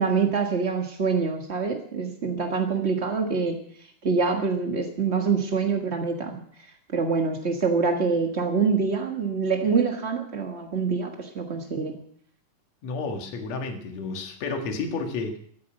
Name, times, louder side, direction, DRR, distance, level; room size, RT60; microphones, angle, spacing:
voice 1, 0.0-3.6 4.0-6.4 6.9-12.0, right 5 dB, 80° right, 4 dB, 0.6 m, -25 dB
voice 2, 12.8-15.4, left 4 dB, 60° left, 4 dB, 2.8 m, -31 dB
13.0 x 9.5 x 9.1 m, 0.64 s
omnidirectional pair, 3.8 m